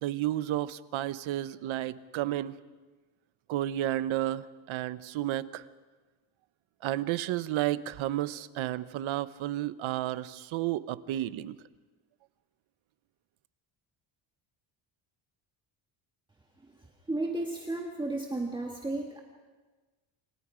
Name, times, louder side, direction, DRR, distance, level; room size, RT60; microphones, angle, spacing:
voice 1, 0.0-2.6 3.5-5.6 6.8-11.6, right 14 dB, 75° right, 14 dB, 1.0 m, -32 dB
voice 2, 17.1-19.2, right 2 dB, 10° right, 0 dB, 1.7 m, -33 dB
29.0 x 26.5 x 5.1 m, 1.3 s
cardioid pair, 170°, 48 cm